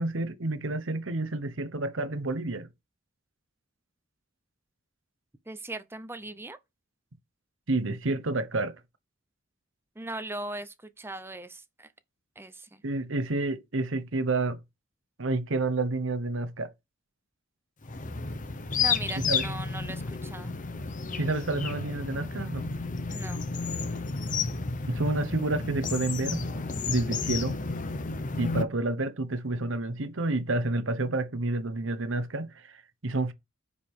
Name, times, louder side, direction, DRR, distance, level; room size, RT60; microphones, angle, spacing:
voice 1, 0.0-2.7 7.7-8.8 12.8-14.6 15.2-16.7 19.2-19.4 21.1-22.7 24.9-26.4 26.9-27.6 28.4-33.3, right 2 dB, 70° right, 1.0 m, -29 dB
voice 2, 5.5-6.6 10.0-11.9 12.4-12.8 18.8-20.5 23.1-23.4, right 2 dB, 10° right, 0.7 m, -39 dB
sound 1, 17.8-28.6, left 4 dB, 40° left, 0.8 m, -32 dB
9.6 x 5.0 x 3.7 m
head